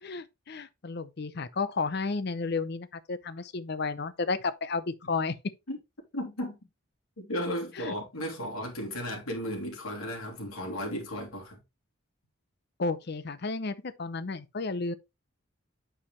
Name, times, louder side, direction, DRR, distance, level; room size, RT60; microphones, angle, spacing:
voice 1, 0.0-5.3 7.8-7.9 12.8-14.9, left 4 dB, 50° left, 0.6 m, -32 dB
voice 2, 6.1-6.6 7.2-11.6, equal, 85° left, 3.0 m, -35 dB
8.6 x 4.9 x 3.2 m
head